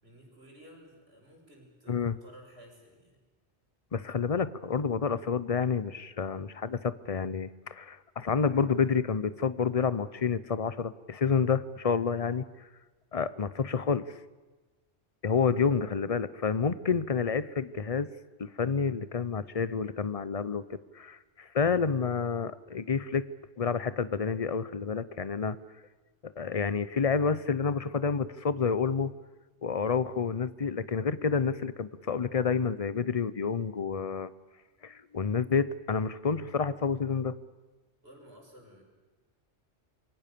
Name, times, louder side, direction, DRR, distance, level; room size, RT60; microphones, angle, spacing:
voice 1, 0.0-3.2 38.0-38.8, equal, 55° right, 0 dB, 6.2 m, -54 dB
voice 2, 3.9-12.4 13.1-14.0 15.2-18.1 18.4-23.2 23.6-25.6 26.2-29.1 29.6-34.3 34.8-37.4, left 5 dB, 35° left, 16 dB, 0.8 m, -29 dB
27.5 x 23.0 x 6.9 m, 1.2 s
omnidirectional pair, 1.2 m